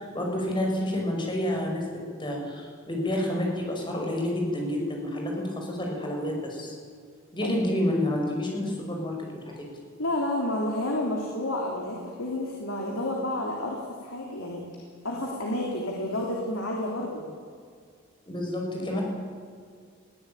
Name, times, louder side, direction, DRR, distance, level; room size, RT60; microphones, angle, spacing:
voice 1, 0.0-6.8 7.3-9.2 9.4-9.7 18.3-19.0, left 1 dB, 25° left, 0 dB, 5.7 m, -29 dB
voice 2, 10.0-14.6 15.0-17.2 18.8-19.0, left 1 dB, 75° left, -1 dB, 3.3 m, -30 dB
21.0 x 15.5 x 9.1 m, 2.1 s
head